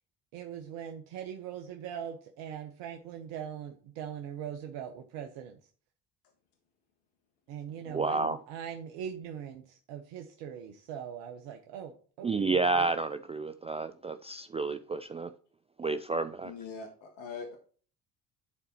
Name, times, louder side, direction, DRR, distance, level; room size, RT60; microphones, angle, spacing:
voice 1, 0.3-5.6 7.5-12.9, right 8 dB, 65° right, 1.2 m, -41 dB
voice 2, 7.9-8.4 12.2-15.3 15.8-16.5, right 3 dB, 15° right, 0.3 m, -30 dB
voice 3, 16.4-17.6, left 5 dB, 65° left, 1.7 m, -42 dB
11.0 x 4.1 x 4.3 m
hypercardioid pair, 60°, 47 cm